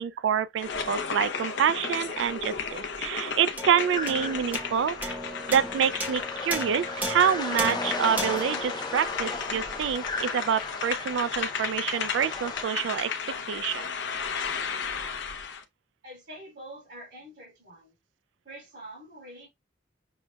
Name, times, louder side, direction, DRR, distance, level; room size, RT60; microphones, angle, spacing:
voice 1, 0.0-5.2 5.5-13.1 13.5-13.9, right 8 dB, 85° right, 0.3 m, -27 dB
sound 1, 0.6-15.6, left 6 dB, 70° left, 0.7 m, -34 dB
sound 2, 3.6-10.2, equal, 10° right, 0.8 m, -36 dB
sound 3, 4.0-12.7, left 3 dB, 25° left, 0.5 m, -37 dB
voice 2, 16.0-17.9 18.4-19.5, right 1 dB, 65° right, 2.9 m, -45 dB
6.2 x 2.2 x 2.2 m
head